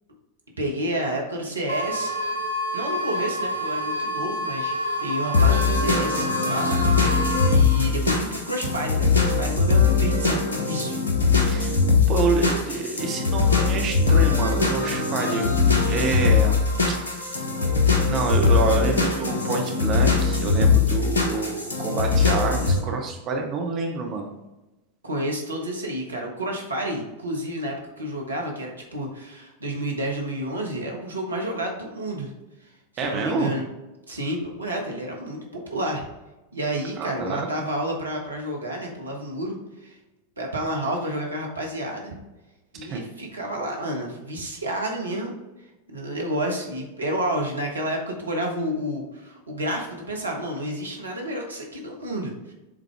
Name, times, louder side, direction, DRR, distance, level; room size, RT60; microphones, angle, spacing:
voice 1, 0.6-2.2 2.7-6.7 7.5-11.0 25.0-32.3 32.6-32.7 32.9-33.6 34.1-36.0 36.5-40.0 40.4-42.2 42.7-45.3 45.9-52.5, right 1 dB, 75° right, 0 dB, 1.3 m, -30 dB
sound 1, 1.7-7.5, equal, 90° left, 0.8 m, -28 dB
sound 2, 5.3-22.8, left 4 dB, 75° left, 1.0 m, -21 dB
voice 2, 6.6-7.0 11.5-11.8 12.1-15.5 15.9-16.6 17.1-17.4 18.0-24.3 33.0-33.6 37.0-37.5 42.9-43.0, right 4 dB, 35° right, 2 dB, 0.8 m, -27 dB
7.3 x 3.9 x 3.4 m, 1.1 s
figure-of-eight pair, 90°, 0 cm